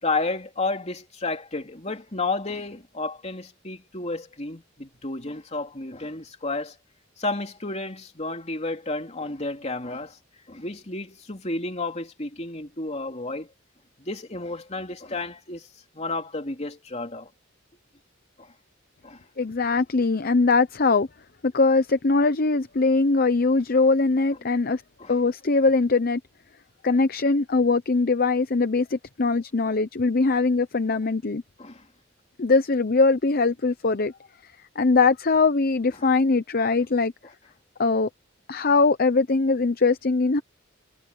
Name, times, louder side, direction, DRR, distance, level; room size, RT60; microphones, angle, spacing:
voice 1, 0.0-6.8 7.2-10.2 10.5-13.5 14.0-15.7 15.9-17.3 18.4-18.5 19.0-19.2 19.7-19.8 25.0-25.1 29.6-29.7 30.3-30.4 31.6-31.9 36.0-36.1 36.6-36.7, left 3 dB, 35° left, 3.0 m, -32 dB
voice 2, 19.4-21.1 21.5-24.8 25.1-26.2 26.8-31.4 32.4-34.1 34.8-37.1 37.8-38.1 38.5-40.4, left 3 dB, 50° left, 0.8 m, -21 dB
head